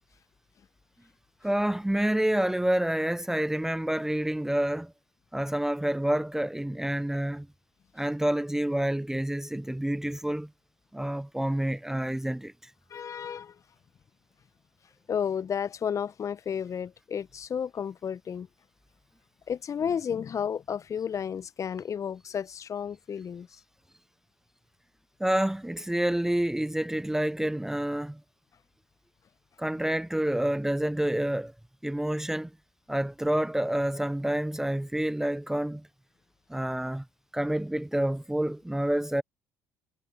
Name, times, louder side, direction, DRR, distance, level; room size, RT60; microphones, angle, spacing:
voice 1, 1.4-4.9 5.3-7.5 7.9-10.5 10.9-12.7 25.2-28.2 29.6-31.5 31.8-32.5 32.9-35.8 36.5-37.0 37.3-39.2, right 1 dB, 5° right, 0.7 m, -28 dB
voice 2, 12.9-13.6 15.1-18.5 19.5-23.6, left 7 dB, 40° left, 1.1 m, -32 dB
hypercardioid pair, 60°, 8 cm